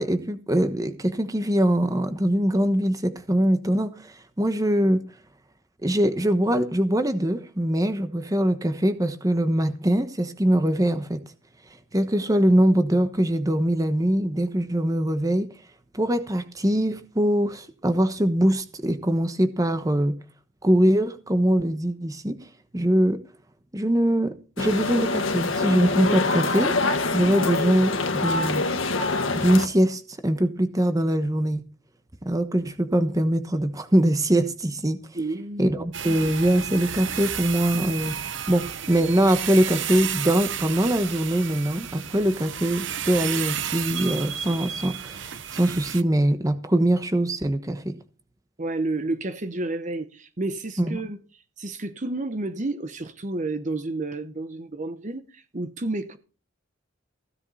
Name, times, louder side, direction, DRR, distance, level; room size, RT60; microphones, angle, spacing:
voice 1, 0.0-5.0 5.8-11.2 11.9-15.5 15.9-20.2 20.6-22.4 22.7-23.2 23.7-26.7 27.1-28.7 29.4-31.6 32.2-35.0 35.6-38.2 38.5-48.0 50.8-51.0, right 1 dB, 15° right, 1.1 m, -22 dB
sound 1, 24.6-29.7, left 3 dB, 85° left, 1.6 m, -25 dB
voice 2, 35.1-35.8 48.6-51.2 51.6-56.2, right 2 dB, 40° right, 0.9 m, -30 dB
sound 2, 35.9-46.0, right 9 dB, 70° right, 0.8 m, -32 dB
15.5 x 10.5 x 4.2 m
head